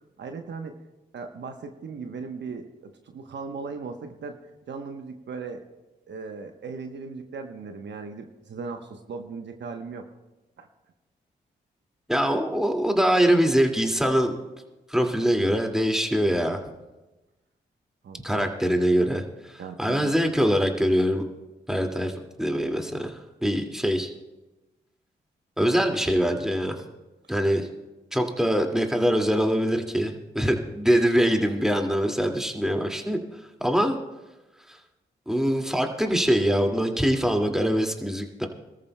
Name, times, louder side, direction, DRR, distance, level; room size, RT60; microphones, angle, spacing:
voice 1, 0.2-0.8 1.1-4.4 4.7-5.7 6.1-10.1 10.6-10.7 18.0-18.5 19.6-20.1, right 4 dB, 65° right, 5 dB, 1.0 m, -37 dB
voice 2, 12.1-14.3 14.9-16.6 18.2-19.5 19.8-21.2 21.7-22.1 22.4-24.1 25.6-26.8 27.3-27.7 28.1-33.2 33.6-34.0 35.3-38.5, equal, ahead, 3 dB, 2.2 m, -23 dB
24.0 x 14.0 x 2.2 m, 1.1 s
supercardioid pair, 40°, 20 cm